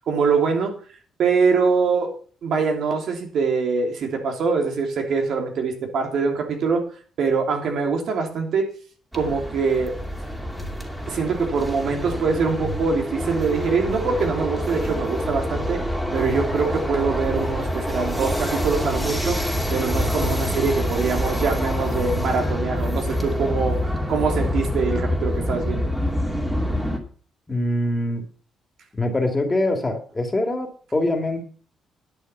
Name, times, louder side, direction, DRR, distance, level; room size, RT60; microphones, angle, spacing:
voice 1, 0.1-0.7 1.2-2.1 2.4-6.8 7.2-8.7 9.1-10.0 11.1-15.8 16.1-19.4 19.7-25.9, right 5 dB, 70° right, 3 dB, 3.0 m, -23 dB
sound 1, 9.1-27.0, equal, 5° right, 2.5 m, -26 dB
voice 2, 27.5-28.2 28.9-31.4, left 1 dB, 20° left, 4 dB, 2.6 m, -24 dB
11.0 x 7.9 x 5.7 m, 0.42 s
cardioid pair, 90°, 0 cm